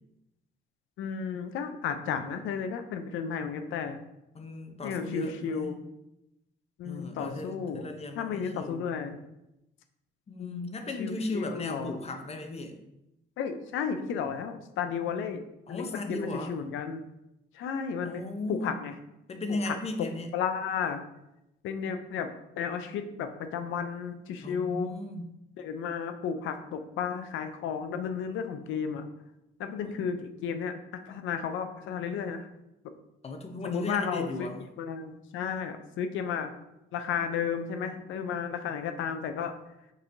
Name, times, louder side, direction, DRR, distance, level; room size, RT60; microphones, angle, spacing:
voice 1, 1.0-4.0 4.8-5.8 6.8-7.9 8.2-9.2 10.4-10.7 11.0-12.0 13.4-15.4 15.7-17.0 17.5-18.2 18.5-18.9 19.5-19.7 20.3-21.0 21.6-22.3 22.6-24.9 25.6-29.1 29.6-32.5 33.6-34.5 34.8-36.5 36.9-39.5, left 7 dB, 80° left, 8 dB, 0.5 m, -33 dB
voice 2, 4.3-5.7 6.8-8.9 10.3-12.8 15.7-16.6 18.0-18.7 19.3-20.3 24.4-25.3 29.8-30.1 33.2-34.6, left 2 dB, 30° left, 5 dB, 0.6 m, -36 dB
5.3 x 3.0 x 2.6 m, 0.87 s
cardioid pair, 90°, 20 cm